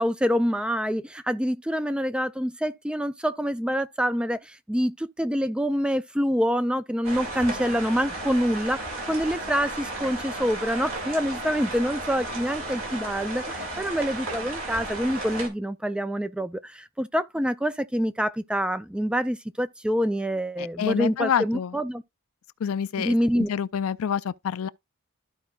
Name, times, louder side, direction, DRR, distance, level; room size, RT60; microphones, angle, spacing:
voice 1, 0.0-22.0 23.0-23.5, equal, 5° right, 0.3 m, -26 dB
sound 1, 7.0-15.5, right 2 dB, 65° right, 2.4 m, -34 dB
voice 2, 20.6-21.8 22.6-24.7, left 8 dB, 70° left, 0.4 m, -28 dB
14.0 x 4.7 x 2.3 m
head